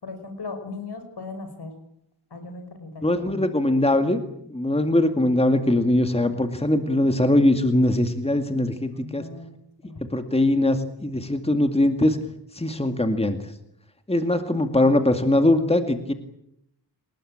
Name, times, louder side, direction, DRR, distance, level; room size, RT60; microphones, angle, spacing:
voice 1, 0.0-1.7 2.3-3.5 8.9-9.5 9.8-10.0, left 3 dB, 70° left, 7 dB, 6.2 m, -38 dB
voice 2, 3.0-4.2 4.5-9.2 10.0-12.2 12.5-13.4 14.1-16.1, left 1 dB, 15° left, 8 dB, 2.2 m, -21 dB
29.0 x 19.5 x 8.8 m, 0.77 s
wide cardioid pair, 100°, 41 cm